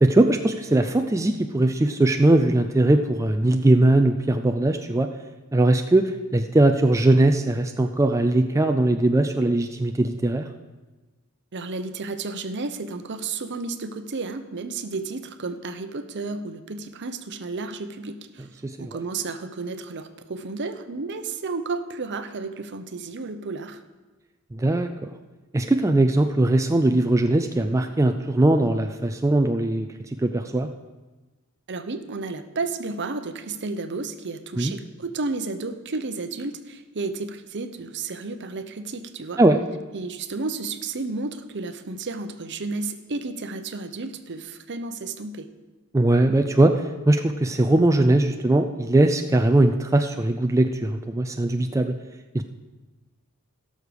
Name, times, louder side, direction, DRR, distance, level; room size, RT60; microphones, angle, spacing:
voice 1, 0.0-5.1 5.5-10.5 18.6-18.8 24.5-24.9 25.5-29.9 30.2-30.7 34.6-34.7 39.4-39.6 45.9-51.9 52.3-52.4, right 2 dB, 15° right, 5 dB, 0.4 m, -20 dB
voice 2, 11.5-23.8 31.7-39.4 39.9-45.5, right 3 dB, 55° right, 9 dB, 0.8 m, -32 dB
17.0 x 6.6 x 5.1 m, 1.2 s
head